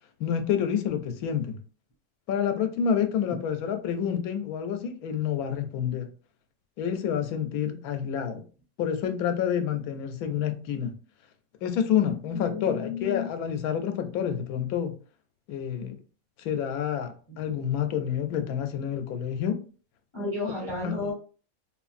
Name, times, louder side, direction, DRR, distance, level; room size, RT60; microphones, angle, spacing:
voice 1, 0.2-1.6 2.3-6.1 6.8-8.4 8.8-10.9 11.6-15.0 15.5-16.0 16.4-19.6 20.8-21.1, left 8 dB, 90° left, 1.1 m, -28 dB
voice 2, 12.3-13.3 20.1-21.1, left 3 dB, 25° left, 0.9 m, -32 dB
3.1 x 2.5 x 2.4 m
omnidirectional pair, 1.5 m